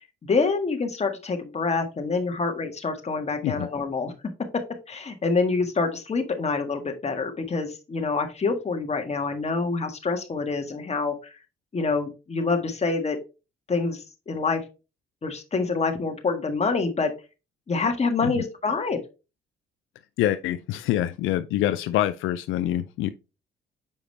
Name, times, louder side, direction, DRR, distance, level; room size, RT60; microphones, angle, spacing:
voice 1, 0.2-4.1 4.5-11.3 11.7-13.2 13.7-14.6 15.2-17.1 17.7-19.0, left 4 dB, 35° left, 1.6 m, -26 dB
voice 2, 20.2-23.1, left 13 dB, 90° left, 0.5 m, -25 dB
7.1 x 4.9 x 3.2 m
cardioid pair, 90°, 20 cm